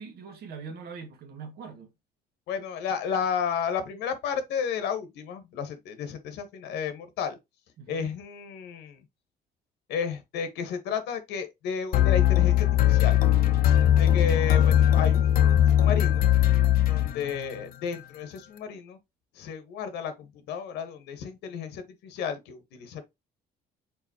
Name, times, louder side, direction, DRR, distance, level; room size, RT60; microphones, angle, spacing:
voice 1, 0.0-1.9 7.8-8.1, right 5 dB, 70° right, 1.4 m, -42 dB
voice 2, 2.5-7.3 7.9-9.0 9.9-13.2 14.0-16.3 16.9-19.0 19.4-23.0, left 7 dB, 85° left, 1.2 m, -32 dB
sound 1, 11.9-17.6, left 11 dB, 60° left, 0.7 m, -20 dB
4.8 x 3.9 x 2.8 m
cardioid pair, 110°, 17 cm